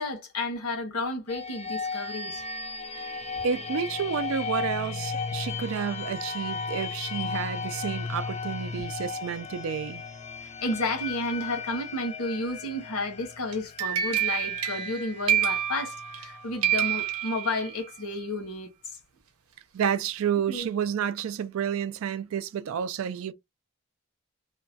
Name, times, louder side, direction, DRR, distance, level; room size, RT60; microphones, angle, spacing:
voice 1, 0.0-2.4 3.1-3.4 8.7-8.8 10.4-19.0 20.5-20.7, left 2 dB, 90° left, 1.2 m, -32 dB
sound 1, 1.3-16.9, left 5 dB, 30° left, 0.4 m, -36 dB
voice 2, 3.4-10.0 19.7-23.3, right 7 dB, 65° right, 0.3 m, -30 dB
sound 2, 13.5-16.3 16.6-17.9, right 10 dB, 85° right, 0.7 m, -28 dB
2.9 x 2.2 x 2.6 m
head